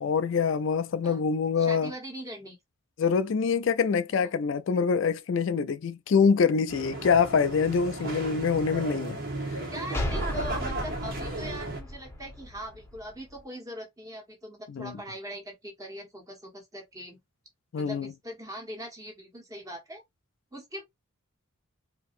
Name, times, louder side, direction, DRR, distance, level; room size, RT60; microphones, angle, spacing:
voice 1, 0.0-1.9 3.0-9.2 9.5-9.6 14.7-15.0 17.7-18.1, left 5 dB, 65° left, 0.3 m, -25 dB
voice 2, 1.6-2.6 4.1-4.3 9.7-17.2 17.8-20.0 20.5-20.9, right 1 dB, 15° right, 1.4 m, -41 dB
sound 1, 6.7-11.8, right 2 dB, 45° right, 1.5 m, -35 dB
sound 2, 9.9-13.4, left 1 dB, 10° left, 0.9 m, -35 dB
4.5 x 2.9 x 2.5 m
head